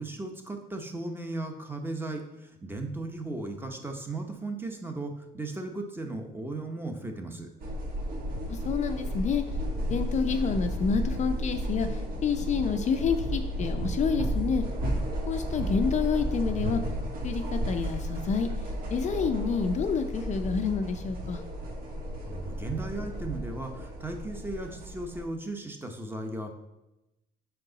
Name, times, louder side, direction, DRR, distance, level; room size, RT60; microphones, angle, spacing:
voice 1, 0.0-7.5 22.2-26.5, right 2 dB, 10° right, 4 dB, 0.9 m, -36 dB
sound 1, 7.6-25.2, right 1 dB, 60° right, 1.4 m, -33 dB
voice 2, 8.4-9.4 9.9-14.7 15.3-16.8 17.2-18.5 18.9-21.4, left 6 dB, 45° left, 7 dB, 0.5 m, -28 dB
6.5 x 4.6 x 3.9 m, 0.94 s
cardioid pair, 110°, 17 cm